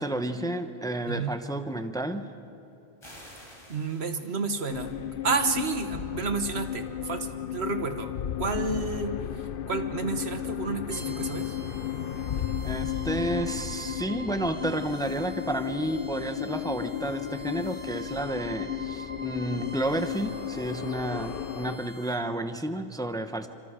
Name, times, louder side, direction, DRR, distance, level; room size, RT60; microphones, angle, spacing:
voice 1, 0.0-2.3 12.6-23.5, right 1 dB, 5° left, 8 dB, 0.8 m, -31 dB
voice 2, 1.1-1.4 3.7-5.0 5.2-11.6, right 4 dB, 85° right, 7 dB, 1.6 m, -31 dB
sound 1, 3.0-5.0, equal, 25° left, 4.6 m, -50 dB
sound 2, 4.7-21.8, left 10 dB, 60° left, 0.8 m, -34 dB
sound 3, 10.9-22.1, right 2 dB, 60° right, 4.3 m, -46 dB
29.5 x 26.0 x 5.0 m, 3.0 s
omnidirectional pair, 1.1 m